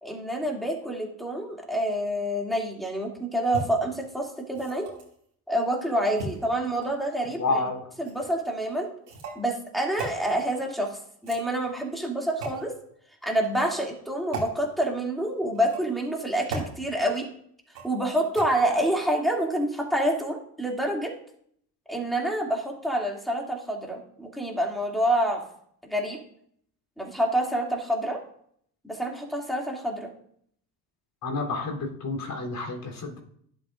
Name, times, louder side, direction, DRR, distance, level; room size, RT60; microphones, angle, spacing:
voice 1, 0.0-4.9 5.5-7.6 8.0-8.9 9.3-12.7 13.2-17.3 17.8-21.1 21.9-25.4 25.8-26.2 27.0-28.2 28.8-30.1, right 1 dB, ahead, -1 dB, 2.7 m, -27 dB
sound 1, 3.5-3.6 4.5-5.1 6.2-7.1 8.0-8.3 9.1-9.4 10.0-10.2 11.1-11.8 12.4-12.6 13.4-13.7 14.3-14.5 15.5-16.0 16.5-16.7 17.7-18.0 18.4-18.5, right 3 dB, 85° right, 2.6 m, -36 dB
voice 2, 7.4-7.9 31.2-33.2, left 3 dB, 45° left, 0 dB, 3.7 m, -29 dB
12.0 x 7.3 x 2.6 m, 0.66 s
hypercardioid pair, 65°, 48 cm